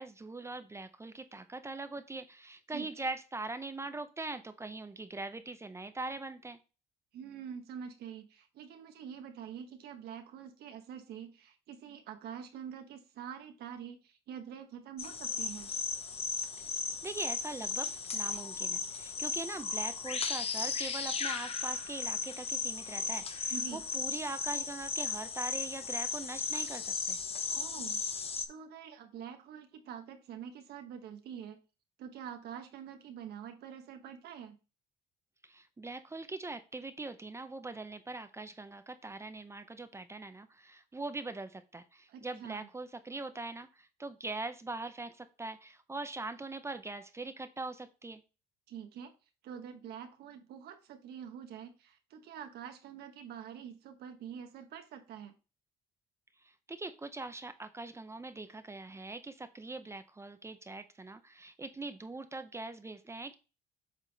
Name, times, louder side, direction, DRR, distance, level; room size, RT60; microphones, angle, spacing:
voice 1, 0.0-6.6 17.0-27.2 35.4-48.2 56.4-63.3, right 3 dB, 15° right, 10 dB, 0.6 m, -42 dB
voice 2, 2.7-3.1 7.1-15.7 23.5-23.8 27.5-28.0 28.5-31.6 32.0-34.6 42.1-42.7 48.7-49.1 49.4-55.3, right 8 dB, 70° right, 6 dB, 1.1 m, -46 dB
sound 1, 15.0-28.5, left 5 dB, 35° left, 0.8 m, -36 dB
7.5 x 3.5 x 3.9 m, 0.32 s
cardioid pair, 110°, 17 cm